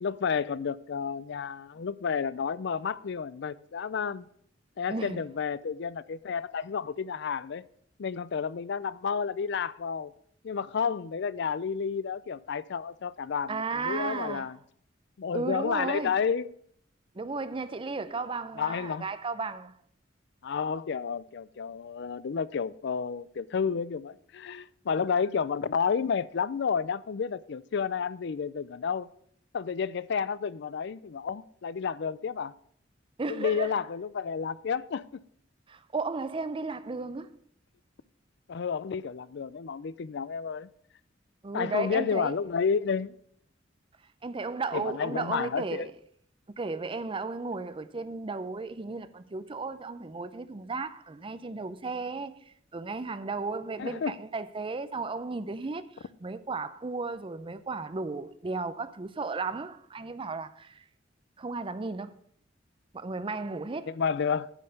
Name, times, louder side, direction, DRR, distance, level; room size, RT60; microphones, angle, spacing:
voice 1, 0.0-4.3 4.8-7.7 8.0-10.1 10.4-14.6 15.2-16.5 18.6-19.0 20.4-29.1 29.5-32.5 33.3-35.0 38.5-40.7 41.5-43.1 44.7-45.9 53.8-54.2 63.9-64.5, left 6 dB, 65° left, 0.4 m, -31 dB
voice 2, 4.9-5.2 13.5-14.5 15.3-16.2 17.1-19.7 33.2-33.7 35.7-37.4 41.4-42.4 44.2-45.9 46.6-60.8 61.4-62.2 62.9-64.0, right 3 dB, 30° right, 0.5 m, -34 dB
10.0 x 5.4 x 6.5 m
head